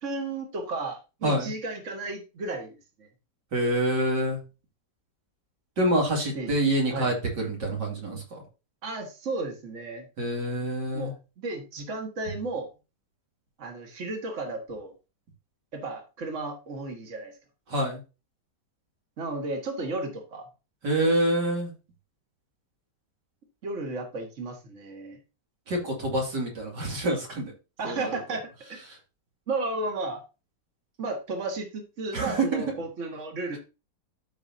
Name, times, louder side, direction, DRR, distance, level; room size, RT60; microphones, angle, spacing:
voice 1, 0.0-3.1 6.4-6.5 6.9-7.1 8.8-10.1 10.9-12.7 13.6-14.9 15.7-17.3 19.2-20.5 23.6-25.2 27.8-28.8 29.5-30.2 31.0-33.6, right 2 dB, 45° right, 3 dB, 1.9 m, -33 dB
voice 2, 3.5-4.4 5.8-8.4 10.2-11.1 17.7-18.0 20.8-21.7 25.7-27.5 27.8-28.4 28.9-29.0 32.1-32.6, right 1 dB, 80° right, 0 dB, 3.1 m, -27 dB
13.5 x 5.1 x 2.8 m, 0.30 s
omnidirectional pair, 1.8 m